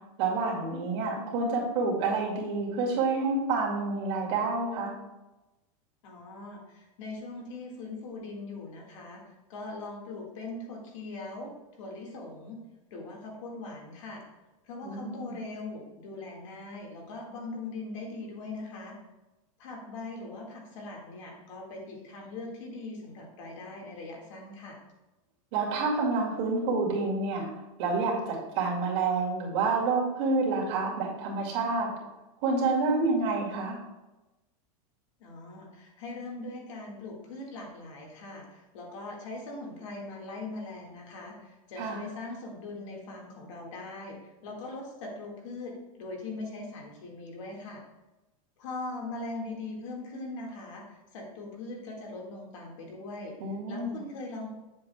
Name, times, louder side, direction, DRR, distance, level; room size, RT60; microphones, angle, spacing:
voice 1, 0.2-4.9 14.8-15.3 25.5-27.5 27.8-31.9 32.4-33.8 41.8-42.0 53.4-54.0, right 3 dB, 50° right, -3 dB, 2.1 m, -28 dB
voice 2, 6.0-9.2 9.5-12.6 12.9-14.2 14.6-19.0 19.6-24.8 35.2-47.8 48.6-53.4 53.7-54.5, left 2 dB, 60° left, -1 dB, 1.8 m, -41 dB
7.9 x 7.5 x 2.2 m, 1.0 s
supercardioid pair, 175°, 18 cm